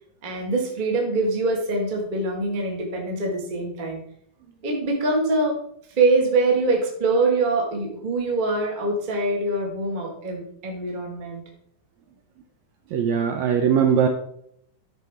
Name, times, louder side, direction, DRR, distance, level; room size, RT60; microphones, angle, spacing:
voice 1, 0.2-4.0 4.6-5.5 6.0-11.4, right 2 dB, 35° right, 0 dB, 0.8 m, -24 dB
voice 2, 12.9-14.1, right 7 dB, 75° right, 5 dB, 1.7 m, -20 dB
12.5 x 5.0 x 3.5 m, 0.69 s
omnidirectional pair, 3.8 m